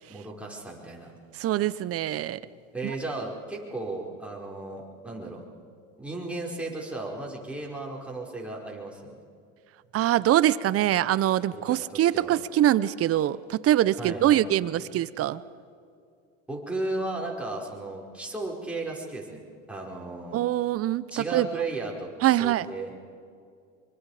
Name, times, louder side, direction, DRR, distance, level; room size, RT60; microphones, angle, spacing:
voice 1, 0.1-1.1 2.7-5.4 6.0-9.2 11.5-12.3 14.0-14.4 16.5-19.4 19.7-20.4 21.1-22.9, right 2 dB, 5° right, -3 dB, 5.0 m, -35 dB
voice 2, 1.3-2.4 2.8-2.9 9.9-15.4 20.3-21.5 22.2-22.7, right 13 dB, 35° right, 17 dB, 0.8 m, -24 dB
24.5 x 24.0 x 5.0 m, 2.3 s
supercardioid pair, 105°, 39 cm